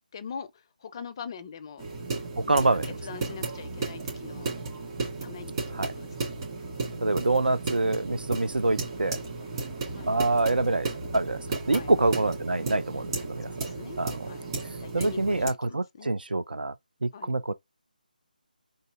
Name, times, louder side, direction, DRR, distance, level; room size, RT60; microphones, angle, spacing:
voice 1, 0.1-1.8 2.5-4.5 5.2-6.2 9.9-10.1 11.7-11.9 13.6-14.5 14.8-16.1 17.1-17.3, left 6 dB, 30° left, 0.4 m, -42 dB
sound 1, 1.8-15.5, right 3 dB, 30° right, 2.2 m, -34 dB
voice 2, 2.5-2.8 5.8-5.9 7.0-9.2 10.1-10.9 11.1-13.5 14.0-14.2 14.9-16.7 17.0-17.5, right 2 dB, 80° right, 0.5 m, -26 dB
3.8 x 2.8 x 3.3 m
figure-of-eight pair, 155°, 5 cm